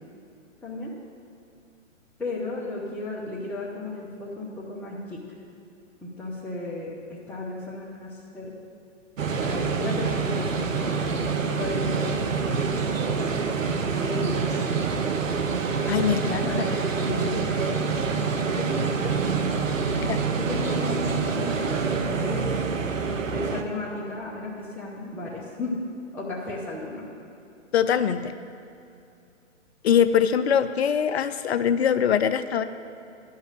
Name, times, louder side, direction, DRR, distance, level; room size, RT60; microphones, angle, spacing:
voice 1, 0.6-0.9 2.2-5.2 6.0-8.5 9.4-12.2 12.8-14.5 15.7-19.2 19.9-22.5 23.3-25.8 26.1-27.0, left 2 dB, 5° left, -8 dB, 1.0 m, -34 dB
sound 1, 9.2-23.6, right 5 dB, 80° right, 0.9 m, -26 dB
voice 2, 15.9-16.5 20.1-20.3 27.7-28.3 29.8-32.6, left 8 dB, 55° left, 11 dB, 0.6 m, -22 dB
12.0 x 5.6 x 8.7 m, 2.6 s
hypercardioid pair, 130°, 38 cm